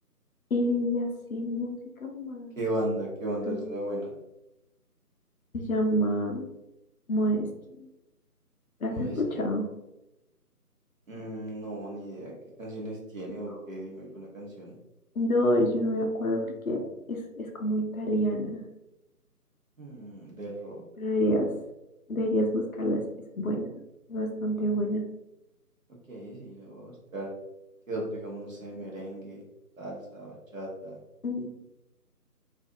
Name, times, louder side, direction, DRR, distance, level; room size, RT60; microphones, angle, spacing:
voice 1, 0.5-2.6 3.4-3.6 5.5-6.5 7.1-7.5 8.8-9.7 15.2-18.6 21.0-21.5 22.1-23.0 23.4-23.7 24.1-25.0 31.2-31.5, equal, 60° left, 2 dB, 0.6 m, -28 dB
voice 2, 2.6-4.1 8.9-9.4 11.1-12.3 12.6-14.7 19.8-20.8 26.1-27.3 27.9-29.4 29.8-31.0, right 1 dB, 55° right, -3 dB, 1.0 m, -36 dB
2.6 x 2.3 x 2.6 m, 0.92 s
figure-of-eight pair, 165°, 48 cm